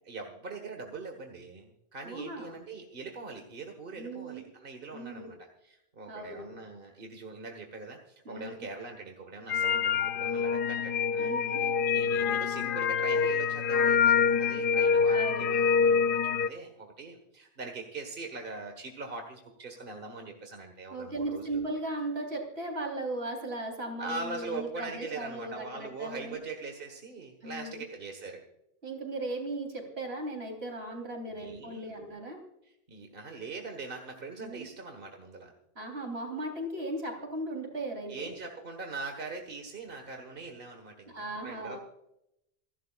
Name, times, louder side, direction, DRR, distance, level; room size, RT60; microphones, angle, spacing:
voice 1, 0.1-21.6 24.0-28.4 31.3-32.0 32.6-35.5 38.1-41.8, right 3 dB, 55° right, 3 dB, 1.7 m, -42 dB
voice 2, 2.0-2.6 4.0-4.4 4.9-5.3 6.1-6.6 8.3-8.7 11.2-11.6 13.1-13.2 15.1-15.6 20.9-26.4 27.4-27.8 28.8-32.4 34.4-34.7 35.8-38.3 41.1-41.8, right 2 dB, 75° right, 2 dB, 3.9 m, -37 dB
sound 1, 9.5-16.5, left 6 dB, 60° left, 0.8 m, -26 dB
28.5 x 11.5 x 2.4 m, 0.82 s
omnidirectional pair, 1.1 m